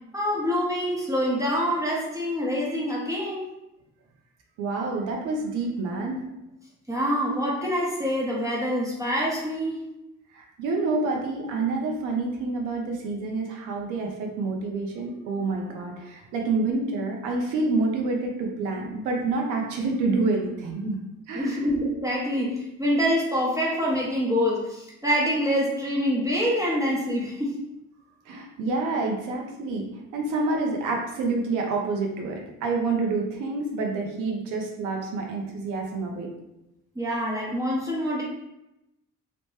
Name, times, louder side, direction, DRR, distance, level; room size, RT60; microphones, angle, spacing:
voice 1, 0.1-3.4 6.9-9.8 21.3-27.6 37.0-38.2, equal, 10° right, -5 dB, 0.7 m, -26 dB
voice 2, 4.6-6.2 10.3-21.0 21.3-21.7 28.3-36.3, right 3 dB, 90° right, 0 dB, 0.6 m, -28 dB
2.9 x 2.1 x 3.1 m, 0.91 s
cardioid pair, 90°, 30 cm